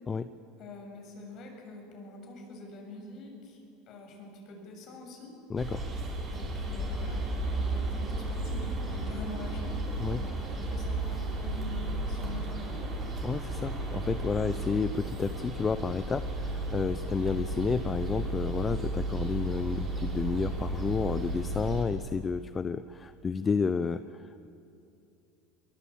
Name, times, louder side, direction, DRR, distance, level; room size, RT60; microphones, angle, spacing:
voice 1, 0.6-5.3 6.3-9.7 10.2-13.0, left 2 dB, 45° left, 2 dB, 7.0 m, -45 dB
voice 2, 5.5-5.9 10.0-10.2 13.2-24.5, left 5 dB, 20° left, 12 dB, 0.6 m, -31 dB
sound 1, 5.6-21.8, right 2 dB, 25° right, 5.9 m, -34 dB
23.0 x 21.5 x 8.6 m, 2.7 s
supercardioid pair, 125°, 0 cm